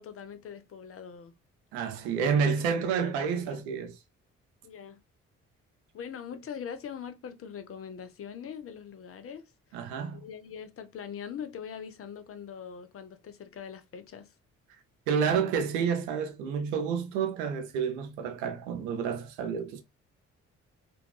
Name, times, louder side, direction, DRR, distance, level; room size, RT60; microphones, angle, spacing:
voice 1, 0.0-1.3 3.0-3.6 4.6-5.0 5.9-9.8 10.1-14.3, left 7 dB, 40° left, 0.6 m, -42 dB
voice 2, 1.7-4.0 9.7-10.2 15.1-19.8, right 6 dB, 80° right, 0.6 m, -29 dB
2.6 x 2.3 x 2.2 m
hypercardioid pair, 45°, 37 cm